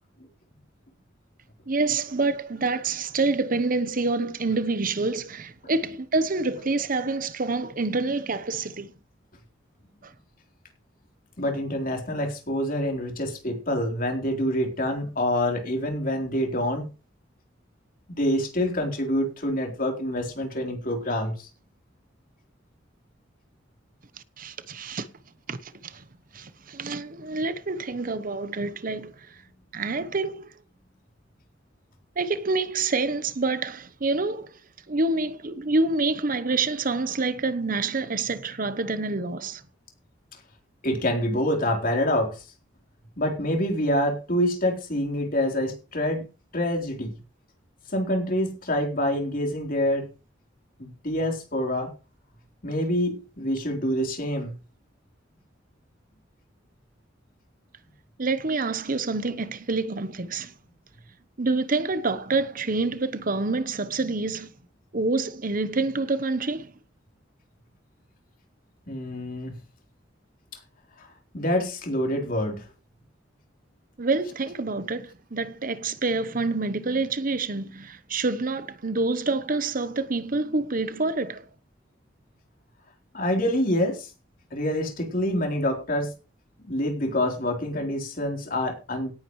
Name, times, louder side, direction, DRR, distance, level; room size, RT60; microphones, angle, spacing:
voice 1, 1.7-8.9 10.0-10.1 24.4-25.1 25.5-26.0 26.3-29.4 29.7-30.5 32.2-34.6 34.9-39.6 58.2-60.5 61.4-64.5 64.9-66.7 74.0-81.5, right 3 dB, 45° right, 0.9 m, -27 dB
voice 2, 11.4-16.9 18.1-21.5 40.8-42.5 43.2-46.2 46.5-47.2 47.9-50.1 50.8-51.9 52.6-54.6 68.9-69.6 70.5-70.6 71.0-71.1 71.3-72.7 83.1-84.1 84.5-86.1 86.6-89.1, left 1 dB, 50° left, 3.8 m, -26 dB
17.5 x 9.8 x 3.2 m
head